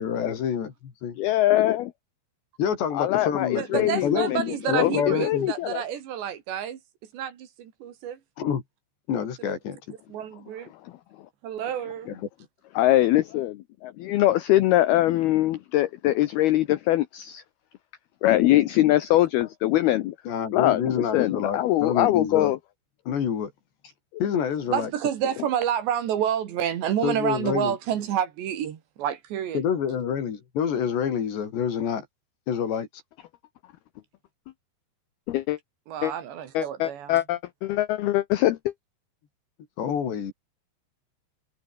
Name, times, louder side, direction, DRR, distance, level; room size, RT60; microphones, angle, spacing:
voice 1, 0.0-1.2 2.6-4.3 4.7-5.5 8.4-8.6 9.1-9.8 12.1-12.2 20.3-22.5 23.1-23.5 24.2-24.9 27.0-27.8 29.5-32.1 32.5-32.9 39.8-40.3, left 8 dB, 60° left, 5.3 m, -27 dB
voice 2, 1.2-1.9 2.9-5.8 12.8-17.4 18.2-20.2 20.5-22.6 35.3-35.6 36.0-36.1 36.5-38.7, left 15 dB, 80° left, 2.3 m, -23 dB
voice 3, 3.6-6.8 7.1-8.2 10.1-10.7 11.4-12.2 24.7-29.6 35.9-37.2, right 10 dB, 65° right, 4.1 m, -29 dB
omnidirectional pair, 5.7 m